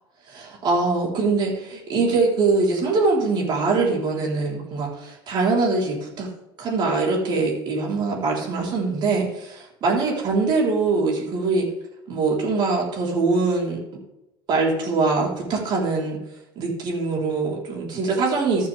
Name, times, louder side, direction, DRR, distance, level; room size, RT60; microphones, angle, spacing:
voice 1, 0.3-6.3 6.6-11.7 12.1-13.8 14.5-16.2 16.6-18.7, right 3 dB, 40° right, -2 dB, 3.9 m, -23 dB
14.0 x 7.4 x 3.5 m, 0.89 s
supercardioid pair, 130°, 12 cm